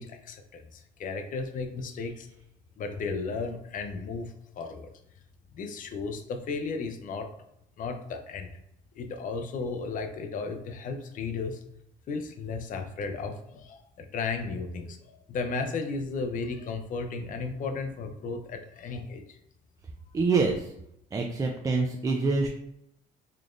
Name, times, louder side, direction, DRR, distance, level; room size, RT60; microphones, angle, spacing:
voice 1, 0.0-2.3 2.8-4.9 5.5-7.3 7.8-8.5 9.0-11.6 12.1-19.4, left 4 dB, 50° left, 6 dB, 0.6 m, -34 dB
voice 2, 20.1-20.7 21.1-22.5, right 4 dB, 20° right, 1 dB, 0.4 m, -26 dB
3.9 x 3.2 x 2.4 m, 0.79 s
cardioid pair, 110°, 17 cm